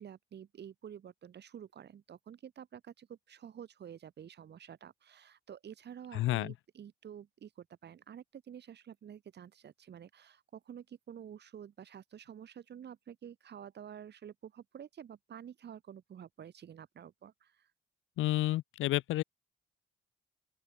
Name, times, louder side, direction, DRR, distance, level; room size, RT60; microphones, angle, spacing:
voice 1, 0.0-17.7, right 9 dB, 60° right, 4.0 m, -50 dB
voice 2, 6.1-6.5 18.2-19.2, left 16 dB, 80° left, 0.7 m, -30 dB
open air
cardioid pair, 90°, 20 cm